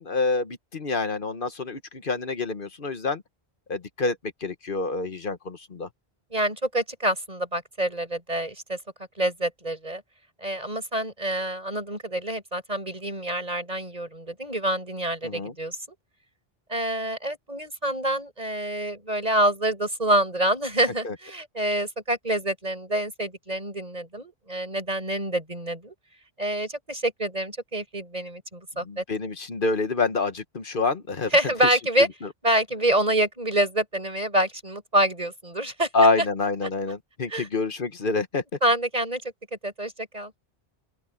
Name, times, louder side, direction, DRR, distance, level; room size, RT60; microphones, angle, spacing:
voice 1, 0.0-3.2 3.7-4.2 4.4-5.9 15.2-15.5 21.0-21.1 28.9-31.3 35.9-38.4, left 3 dB, 55° left, 1.3 m, -26 dB
voice 2, 6.3-8.8 9.2-10.0 10.4-15.8 16.7-25.9 26.4-29.0 31.3-32.1 32.4-35.9 37.3-37.5 38.6-40.3, right 1 dB, 35° right, 7.5 m, -27 dB
omnidirectional pair, 1.1 m